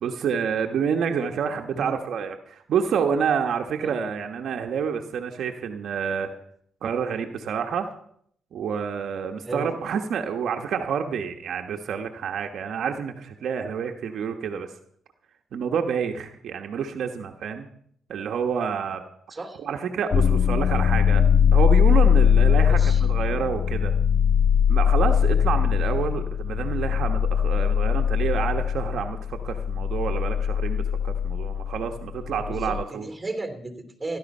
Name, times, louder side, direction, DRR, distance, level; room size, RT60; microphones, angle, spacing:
voice 1, 0.0-6.3 6.8-7.9 8.5-14.7 15.5-17.7 18.1-19.0 19.6-21.2 21.5-23.9 24.7-33.1, right 7 dB, 65° right, 4 dB, 1.2 m, -28 dB
voice 2, 19.3-19.6 22.5-23.0 32.2-34.2, right 2 dB, 15° right, 6 dB, 3.0 m, -35 dB
sound 1, 20.1-32.8, left 8 dB, 55° left, 0.4 m, -21 dB
15.5 x 11.5 x 5.5 m, 0.65 s
cardioid pair, 90°, 0 cm